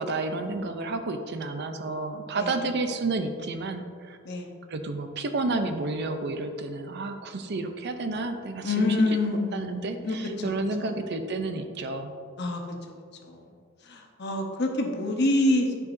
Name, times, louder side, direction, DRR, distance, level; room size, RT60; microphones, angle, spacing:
voice 1, 0.0-4.2 4.7-12.1, right 3 dB, 55° right, 7 dB, 0.5 m, -31 dB
voice 2, 8.6-9.7 10.0-10.5 10.8-10.9 12.4-12.6 12.9-13.4 13.9-15.9, left 2 dB, 55° left, 2 dB, 0.9 m, -26 dB
9.9 x 4.7 x 2.6 m, 2.2 s
head